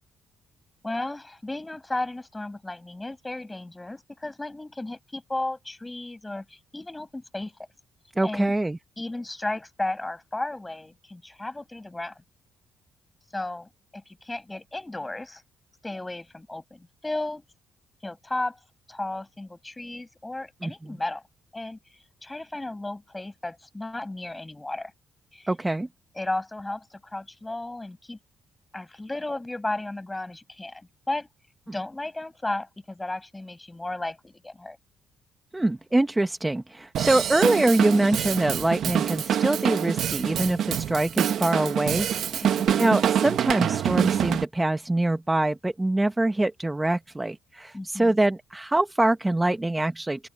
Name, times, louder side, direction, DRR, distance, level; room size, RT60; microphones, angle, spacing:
voice 1, 0.8-7.5 8.2-8.5 9.0-12.2 13.3-15.4 15.8-17.4 18.0-18.6 18.9-21.2 21.5-21.8 22.2-24.9 25.3-25.5 26.1-28.2 28.7-31.3 31.7-34.8 42.4-42.8 47.7-48.2, left 2 dB, 15° left, 7.7 m, -34 dB
voice 2, 8.2-8.8 20.6-21.0 25.5-25.9 35.5-50.3, right 2 dB, 15° right, 0.9 m, -24 dB
Drum kit / Drum, 36.9-44.4, right 9 dB, 70° right, 1.3 m, -25 dB
open air
cardioid pair, 90°, 0 cm